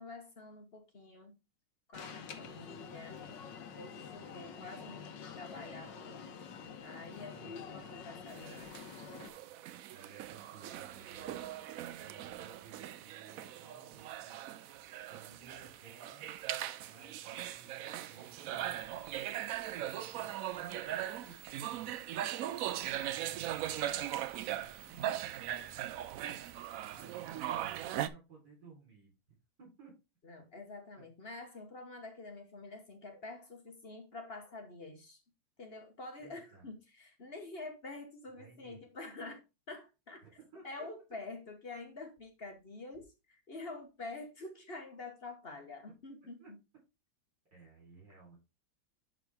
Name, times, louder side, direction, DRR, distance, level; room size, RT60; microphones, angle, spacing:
voice 1, 0.0-1.4 1.9-3.2 3.7-6.3 6.8-9.0 30.2-35.2 35.6-39.4 39.7-40.2 40.6-46.6, left 3 dB, 35° left, 1.2 m, -47 dB
Alarm, 1.9-9.3, left 6 dB, 70° left, 1.7 m, -47 dB
voice 2, 7.1-7.9 9.9-11.4 12.0-14.6 15.1-16.3 16.8-18.8 19.7-20.3 20.6-22.2 22.8-24.0 24.4-25.9 26.9-29.9 30.9-31.1 36.2-36.7 38.3-38.8 40.2-40.9 46.2-46.5 47.5-48.4, right 4 dB, 65° right, 4.7 m, -58 dB
sound 1, 8.3-28.1, right 12 dB, 80° right, 0.7 m, -40 dB
11.0 x 3.8 x 3.5 m
omnidirectional pair, 2.0 m